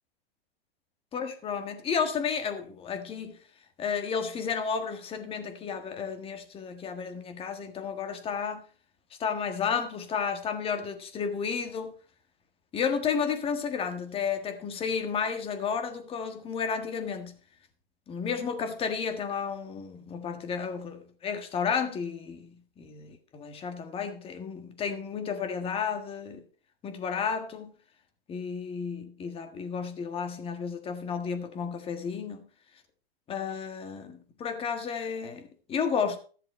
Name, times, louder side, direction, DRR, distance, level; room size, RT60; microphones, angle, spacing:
voice 1, 1.1-3.4 3.8-8.6 9.2-11.9 12.7-17.3 18.1-26.4 26.8-27.7 28.3-32.4 33.3-36.2, left 6 dB, 20° left, 1.5 m, -32 dB
14.0 x 7.4 x 4.4 m
hypercardioid pair, 135°, 30 cm